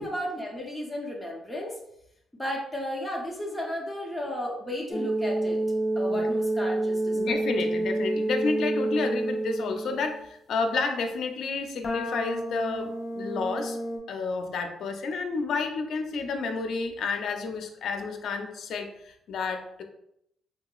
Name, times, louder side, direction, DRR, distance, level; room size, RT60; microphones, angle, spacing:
voice 1, 0.0-1.7 2.4-5.6 6.0-7.4, left 1 dB, 5° left, -3 dB, 0.7 m, -34 dB
sound 1, 4.9-10.1 11.8-14.0, right 2 dB, 50° left, 1.0 m, -28 dB
voice 2, 7.1-13.8 14.1-19.8, left 4 dB, 70° left, 5 dB, 0.5 m, -30 dB
3.6 x 2.8 x 2.3 m, 0.75 s
cardioid pair, 110°, 0 cm